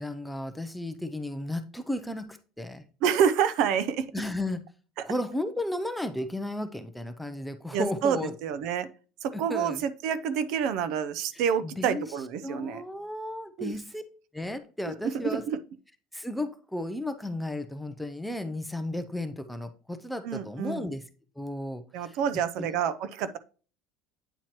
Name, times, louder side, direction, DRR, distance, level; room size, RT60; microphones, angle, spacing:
voice 1, 0.0-2.8 4.1-4.6 5.0-8.4 9.3-9.8 11.6-12.0 12.4-14.0 14.3-15.4 16.1-21.0 21.4-22.2 22.6-22.7, left 1 dB, ahead, 9 dB, 0.5 m, -34 dB
voice 2, 3.0-4.1 7.7-8.9 9.2-12.8 13.6-13.7 15.1-15.6 20.2-20.9 21.9-23.4, right 8 dB, 55° right, 14 dB, 0.5 m, -28 dB
8.9 x 4.4 x 2.9 m, 0.37 s
cardioid pair, 165°, 0 cm